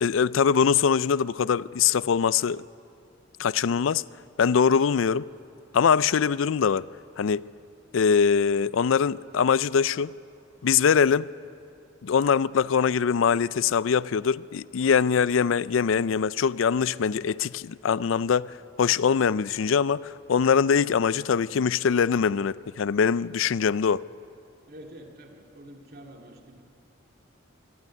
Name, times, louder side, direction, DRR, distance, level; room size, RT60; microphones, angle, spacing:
voice 1, 0.0-2.6 3.4-4.0 4.4-5.3 5.7-6.9 7.2-7.5 7.9-10.1 10.6-11.3 12.0-24.1, left 6 dB, 80° left, 0.4 m, -23 dB
voice 2, 24.7-26.6, right 1 dB, 50° right, 2.2 m, -47 dB
25.5 x 12.0 x 9.6 m
head